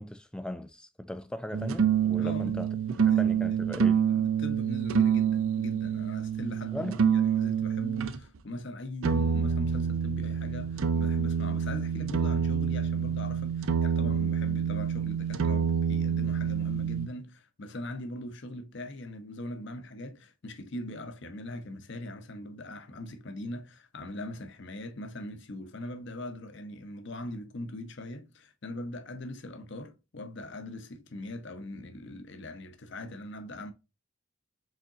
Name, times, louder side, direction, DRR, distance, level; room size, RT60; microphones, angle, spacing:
voice 1, 0.0-4.0 6.7-7.0, left 1 dB, 5° left, 0.3 m, -38 dB
sound 1, 1.5-8.2 9.0-17.1, right 7 dB, 70° right, 0.5 m, -27 dB
voice 2, 2.2-2.6 3.1-33.7, left 1 dB, 55° left, 0.7 m, -41 dB
5.0 x 3.7 x 2.8 m
head